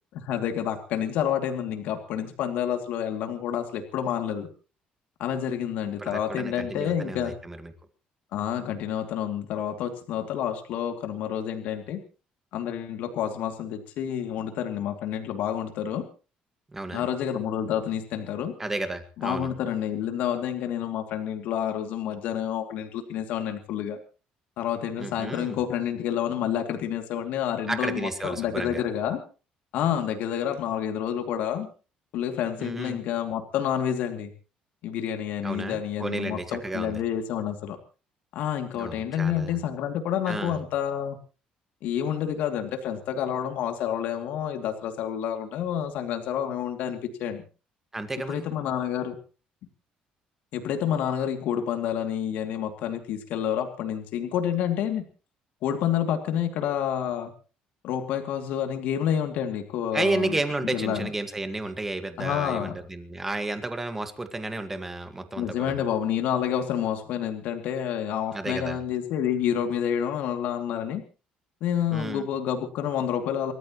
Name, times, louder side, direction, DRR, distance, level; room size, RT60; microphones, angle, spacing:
voice 1, 0.1-4.5 5.2-7.3 8.3-12.0 12.5-16.0 16.9-18.5 19.2-24.0 24.6-29.2 29.7-31.7 32.1-34.3 34.8-37.8 38.3-41.2 41.8-47.4 48.3-49.2 50.5-55.0 55.6-57.3 57.8-60.4 60.7-61.1 62.2-62.8 65.4-71.0 71.6-73.5, left 9 dB, 70° left, 5 dB, 2.6 m, -29 dB
voice 2, 6.0-7.7 16.7-17.1 18.6-19.5 25.0-25.6 27.7-28.8 32.6-33.0 35.4-37.0 38.7-39.6 40.3-40.6 47.9-48.5 59.9-65.8 68.3-68.8 71.9-72.3, right 2 dB, 10° right, 8 dB, 1.7 m, -32 dB
29.0 x 14.0 x 3.1 m, 0.35 s
cardioid pair, 160°, 3 cm